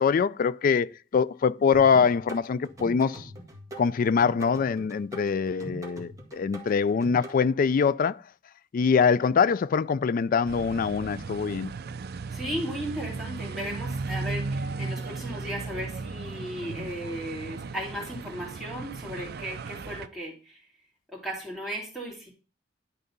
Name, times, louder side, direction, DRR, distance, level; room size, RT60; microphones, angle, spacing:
voice 1, 0.0-3.3 3.8-8.2 8.7-11.7, left 6 dB, 45° left, 0.3 m, -24 dB
sound 1, 1.7-7.3, right 1 dB, 15° right, 1.8 m, -42 dB
sound 2, 10.5-20.1, right 4 dB, 55° right, 0.5 m, -36 dB
voice 2, 12.3-20.6 21.1-22.3, equal, ahead, 2.8 m, -36 dB
11.0 x 3.9 x 5.3 m
head